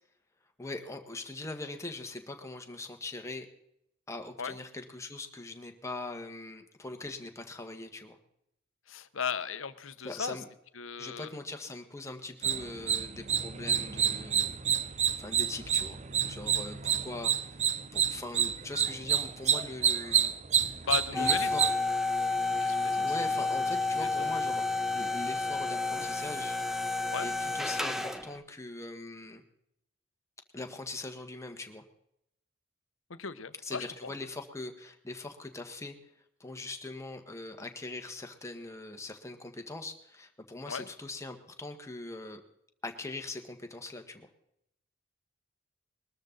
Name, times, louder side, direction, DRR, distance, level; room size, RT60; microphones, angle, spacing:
voice 1, 0.6-3.5 4.1-8.2 10.0-10.5 11.0-14.6 15.2-16.0 16.2-20.3 21.1-21.6 22.9-24.6 24.9-26.6 26.8-29.4 30.5-31.8 33.6-36.0 36.4-42.4 42.8-44.3, left 2 dB, 15° left, 5 dB, 1.6 m, -41 dB
voice 2, 8.9-10.4 10.8-11.3 20.8-21.7 22.2-23.0 24.0-24.3 27.1-27.3 33.1-34.1 40.7-40.9, left 6 dB, 75° left, 13 dB, 1.0 m, -37 dB
sound 1, 12.4-21.7, right 8 dB, 35° right, 0.6 m, -29 dB
sound 2, 21.1-28.4, left 3 dB, ahead, 0.9 m, -30 dB
21.5 x 13.0 x 4.0 m, 0.79 s
head